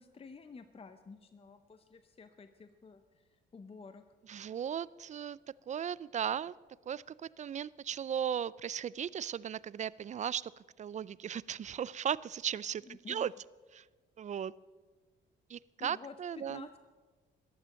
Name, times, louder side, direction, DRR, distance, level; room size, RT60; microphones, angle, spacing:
voice 1, 0.0-4.0 12.8-13.3 15.8-16.8, left 4 dB, 30° left, 9 dB, 0.8 m, -51 dB
voice 2, 4.3-5.4 5.7-6.5 6.9-7.0 7.4-10.5 10.8-13.3 13.7-13.8 14.2-14.5 15.5-16.7, right 8 dB, 35° right, 21 dB, 0.4 m, -36 dB
14.5 x 12.0 x 6.4 m, 1.4 s
cardioid pair, 90°, 20 cm